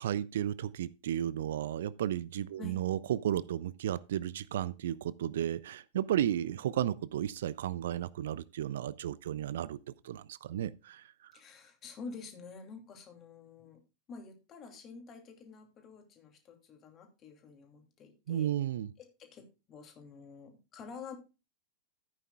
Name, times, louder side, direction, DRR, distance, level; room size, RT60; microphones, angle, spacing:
voice 1, 0.0-9.8 10.0-11.3 18.3-18.9, right 11 dB, 60° right, 0.4 m, -33 dB
voice 2, 11.3-13.8 14.1-18.5 19.0-21.1, left 4 dB, 30° left, 2.8 m, -49 dB
14.0 x 9.2 x 2.3 m
figure-of-eight pair, 90°, 0 cm